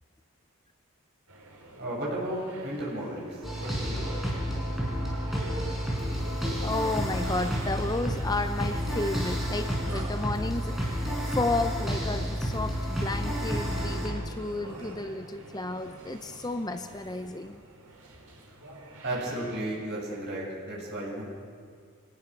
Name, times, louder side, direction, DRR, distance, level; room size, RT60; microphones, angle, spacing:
sound 1, 1.3-19.6, right 2 dB, 80° right, 4.2 m, -47 dB
voice 1, 1.8-4.2 19.0-21.2, right 1 dB, 50° right, -4 dB, 7.9 m, -34 dB
sound 2, 3.4-14.1, equal, ahead, 4.9 m, -30 dB
voice 2, 6.5-17.6, left 2 dB, 20° left, 8 dB, 0.6 m, -32 dB
25.0 x 19.0 x 6.6 m, 2.2 s
head